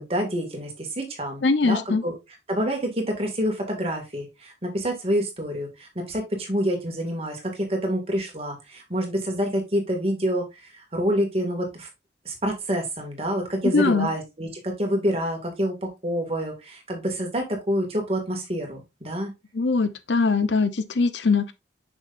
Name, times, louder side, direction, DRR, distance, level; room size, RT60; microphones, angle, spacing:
voice 1, 0.0-2.2 2.5-11.9 12.3-19.3, equal, 35° right, 2.1 m, -27 dB
voice 2, 1.4-2.0 13.7-14.1 19.5-21.5, left 4 dB, 85° left, 0.8 m, -21 dB
6.3 x 6.3 x 2.5 m
head